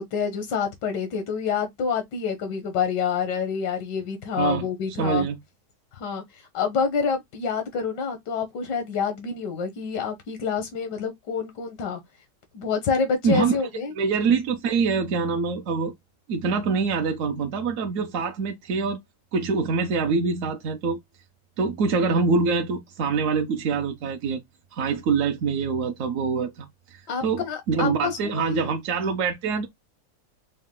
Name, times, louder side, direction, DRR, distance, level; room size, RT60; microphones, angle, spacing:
voice 1, 0.0-5.3 5.9-12.0 12.5-13.9 27.1-28.6, left 6 dB, 90° left, 1.6 m, -27 dB
voice 2, 4.4-4.7 5.0-5.4 13.2-13.5 14.0-15.9 16.3-19.0 19.3-21.0 21.6-24.4 24.7-29.7, right 5 dB, 65° right, 0.9 m, -25 dB
5.3 x 2.2 x 3.6 m
omnidirectional pair, 1.8 m